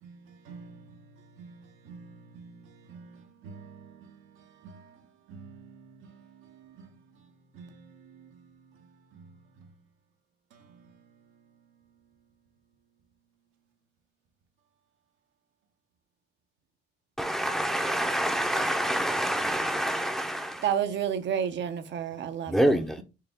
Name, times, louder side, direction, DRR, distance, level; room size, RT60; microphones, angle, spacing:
voice 1, 0.0-5.0 5.3-6.9 7.5-8.5 9.1-9.3 9.6-9.7 10.5-11.2 22.5-22.6, right 4 dB, 90° right, 1.0 m, -50 dB
voice 2, 17.2-20.6 22.5-23.0, right 1 dB, ahead, 0.6 m, -27 dB
voice 3, 20.6-22.8, right 8 dB, 65° right, 0.7 m, -30 dB
4.7 x 2.9 x 3.5 m
cardioid pair, 90°, 20 cm